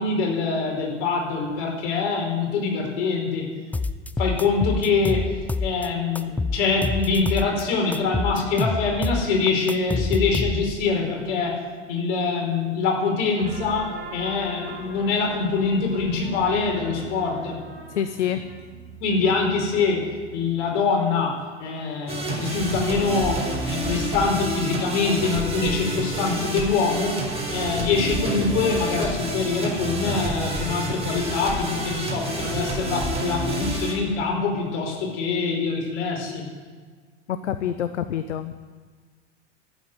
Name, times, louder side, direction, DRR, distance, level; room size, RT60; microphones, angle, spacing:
voice 1, 0.0-3.5 4.2-11.6 11.9-17.6 19.0-36.4, left 4 dB, 60° left, 0 dB, 5.1 m, -24 dB
sound 1, 3.7-5.9 6.1-7.6 7.9-10.9, left 3 dB, 5° left, 0.4 m, -27 dB
sound 2, 13.4-20.7, right 3 dB, 75° right, 4.2 m, -41 dB
voice 2, 17.9-18.5 37.3-38.7, left 9 dB, 75° left, 11 dB, 0.8 m, -27 dB
happy loop, 22.1-33.9, right 1 dB, 15° right, 5.4 m, -29 dB
12.5 x 9.0 x 9.5 m, 1.5 s
figure-of-eight pair, 80°, 36 cm